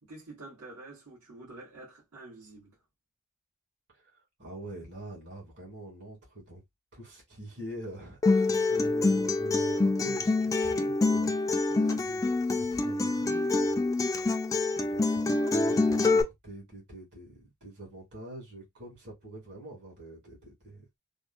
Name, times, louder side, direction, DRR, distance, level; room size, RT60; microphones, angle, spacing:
voice 1, 0.0-2.8 11.7-12.1, right 2 dB, 80° right, 1.6 m, -47 dB
voice 2, 3.9-6.6 6.9-11.6 12.1-14.5 14.8-15.2 15.5-21.0, right 1 dB, 50° right, 2.0 m, -45 dB
Acoustic guitar, 8.2-16.2, left 3 dB, 15° left, 0.3 m, -26 dB
3.5 x 2.2 x 2.4 m
head